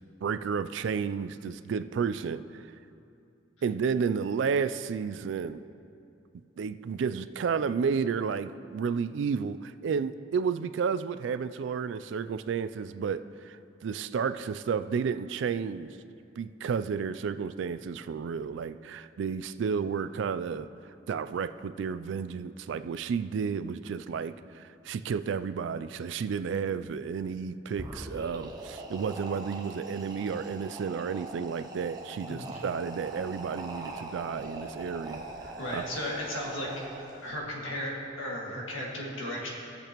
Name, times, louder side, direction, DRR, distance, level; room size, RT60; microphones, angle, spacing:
voice 1, 0.2-2.7 3.6-5.6 6.6-15.9 16.4-20.7 21.1-35.9, right 6 dB, 65° right, 12 dB, 0.3 m, -32 dB
sound 1, 27.7-37.4, right 2 dB, 20° right, 0.7 m, -42 dB
voice 2, 32.3-32.6 35.6-36.7 37.0-39.5, left 1 dB, 85° left, -3 dB, 1.9 m, -35 dB
17.0 x 6.8 x 3.0 m, 2.6 s
head